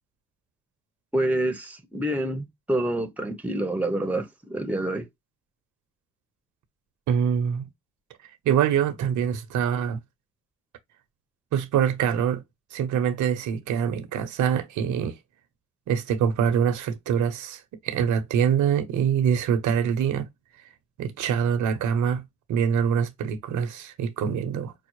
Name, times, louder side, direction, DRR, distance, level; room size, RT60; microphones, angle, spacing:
voice 1, 1.1-5.1, right 1 dB, 5° right, 0.8 m, -27 dB
voice 2, 7.1-7.6 8.4-10.0 11.5-12.4 12.7-15.2 15.9-20.3 21.0-24.7, right 8 dB, 75° right, 0.8 m, -24 dB
5.2 x 2.0 x 3.0 m
cardioid pair, 90°, 30 cm